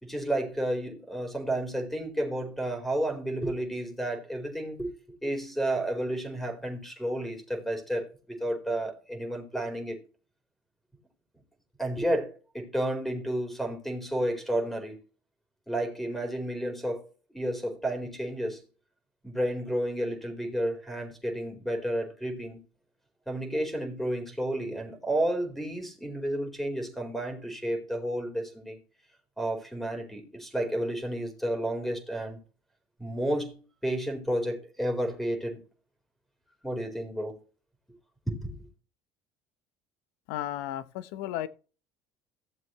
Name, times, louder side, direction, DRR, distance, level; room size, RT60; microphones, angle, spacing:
voice 1, 0.0-4.9 5.2-10.0 11.8-15.0 15.7-17.1 17.3-18.6 19.2-22.6 23.3-28.8 29.4-32.4 33.0-35.6 36.6-37.3 38.3-38.5, right 1 dB, 5° left, 4.2 m, -31 dB
voice 2, 40.3-41.5, left 13 dB, 80° left, 0.9 m, -34 dB
15.5 x 7.3 x 3.1 m
supercardioid pair, 95°, 9 cm